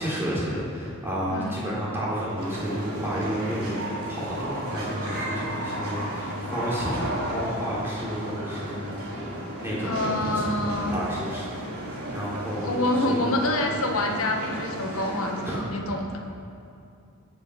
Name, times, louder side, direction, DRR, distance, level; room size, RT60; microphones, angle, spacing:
voice 1, 0.0-9.0 9.6-10.5 10.9-11.5 12.1-13.4 15.4-15.7, equal, 10° right, -8 dB, 3.5 m, -31 dB
voice 2, 1.3-1.6 9.8-11.0 12.6-16.2, left 1 dB, 70° left, 2 dB, 1.5 m, -27 dB
sound 1, 2.4-15.6, right 1 dB, 80° right, 3.9 m, -33 dB
20.0 x 6.8 x 5.8 m, 2.5 s
head